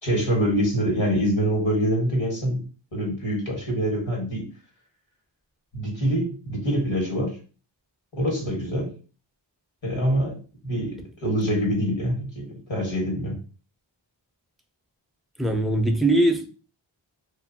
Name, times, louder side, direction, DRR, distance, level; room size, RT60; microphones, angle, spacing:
voice 1, 0.0-2.6 2.9-4.5 5.7-7.4 8.1-8.9 9.8-13.4, equal, 75° left, 1.4 m, -25 dB
voice 2, 15.4-16.5, right 1 dB, ahead, 0.4 m, -21 dB
2.6 x 2.5 x 2.6 m
wide cardioid pair, 45°, 46 cm